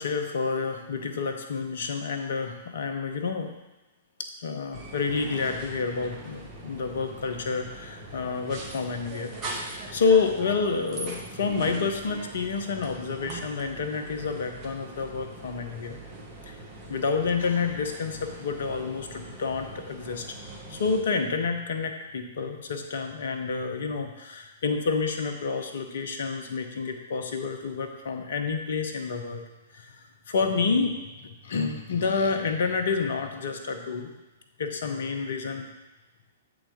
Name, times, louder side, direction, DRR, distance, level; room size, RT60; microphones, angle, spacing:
voice 1, 0.0-3.5 4.4-16.0 16.5-16.6 16.9-20.2 20.7-29.4 29.7-30.0 30.3-34.1 34.6-35.7, left 5 dB, 65° left, 5 dB, 0.9 m, -29 dB
sound 1, 4.7-21.0, right 2 dB, 30° right, 1.3 m, -41 dB
7.5 x 4.0 x 5.0 m, 1.1 s
figure-of-eight pair, 110°, 0 cm